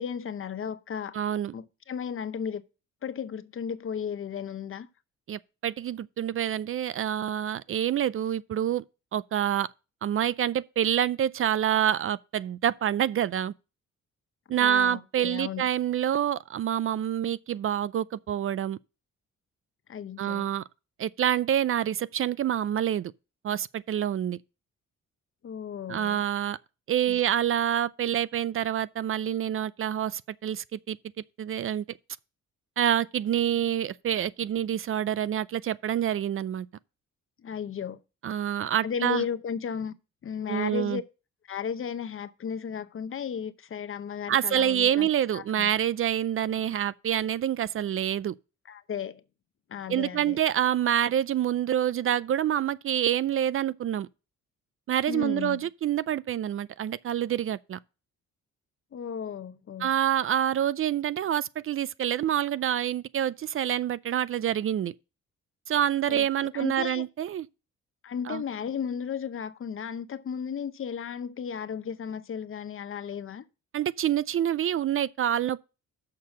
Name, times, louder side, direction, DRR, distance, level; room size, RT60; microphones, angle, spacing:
voice 1, 0.0-1.2 1.5-2.6 3.0-4.9 14.5-15.7 19.9-20.5 25.4-26.2 27.1-27.2 37.4-38.0 38.8-39.9 40.2-41.0 41.5-45.1 45.3-45.7 48.7-49.2 49.7-50.4 55.1-55.7 58.9-59.9 66.1-66.3 66.5-67.1 68.0-73.4, left 7 dB, 45° left, 0.8 m, -34 dB
voice 2, 1.1-1.5 5.3-8.8 9.1-9.7 10.0-13.5 14.5-18.8 20.2-20.6 21.0-23.1 23.4-24.4 25.9-26.6 26.9-31.0 31.4-31.8 32.8-36.7 38.2-39.2 40.5-41.0 44.3-48.3 49.9-54.1 54.9-57.8 59.8-64.9 65.7-67.5 68.3-68.4 73.7-75.6, right 10 dB, 45° right, 0.4 m, -27 dB
6.7 x 5.7 x 6.1 m
cardioid pair, 90°, 30 cm